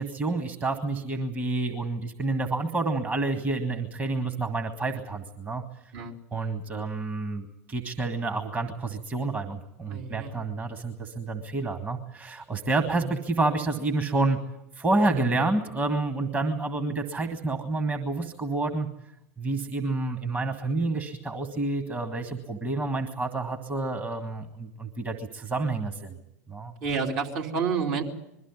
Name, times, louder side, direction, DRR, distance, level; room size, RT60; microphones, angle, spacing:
voice 1, 0.0-5.6 6.3-14.4 14.8-18.9 19.4-26.2 26.5-26.7, right 3 dB, 20° right, 4 dB, 1.7 m, -29 dB
voice 2, 9.9-10.3 12.9-13.0 15.0-15.4 26.8-28.0, right 5 dB, 50° right, -1 dB, 3.1 m, -30 dB
22.0 x 13.5 x 9.7 m, 0.87 s
figure-of-eight pair, 85°, 8 cm